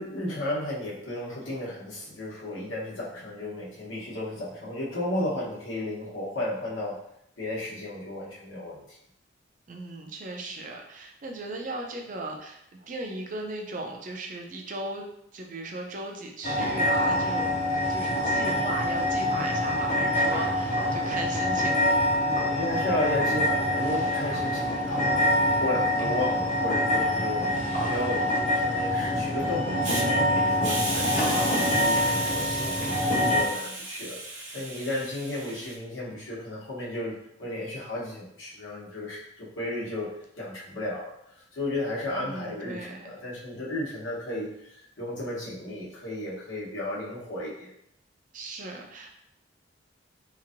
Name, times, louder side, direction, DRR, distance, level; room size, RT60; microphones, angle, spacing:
voice 1, 0.0-7.0 7.4-9.0 22.5-47.7, left 1 dB, 85° left, -5 dB, 1.0 m, -34 dB
voice 2, 9.7-15.1 15.3-17.5 17.9-22.3 42.2-43.1 48.3-49.2, right 2 dB, 40° right, 2 dB, 0.4 m, -37 dB
sound 1, 16.4-33.4, left 1 dB, 40° left, 0.5 m, -25 dB
Hiss, 29.8-30.0 30.6-35.8, right 2 dB, 75° right, 0.7 m, -34 dB
3.0 x 2.6 x 2.5 m, 0.75 s
head